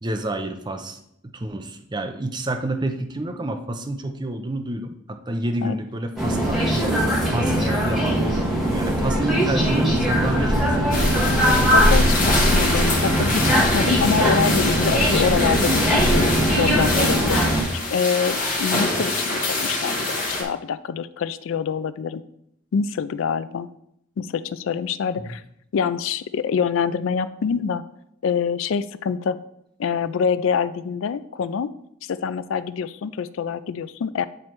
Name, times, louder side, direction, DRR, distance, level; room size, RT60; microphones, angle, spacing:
voice 1, 0.0-7.0 7.3-12.2 25.2-25.4, right 1 dB, 20° right, 6 dB, 0.5 m, -29 dB
sound 1, 6.2-17.6, equal, ahead, 1.4 m, -20 dB
sound 2, 10.9-20.4, left 2 dB, 40° left, 1.3 m, -25 dB
voice 2, 11.7-17.6 17.9-22.2 22.7-23.7 24.2-25.4 25.7-27.8 28.2-29.4 29.8-31.7 32.0-34.3, left 6 dB, 65° left, 14 dB, 0.3 m, -25 dB
9.0 x 3.2 x 4.5 m, 0.76 s
head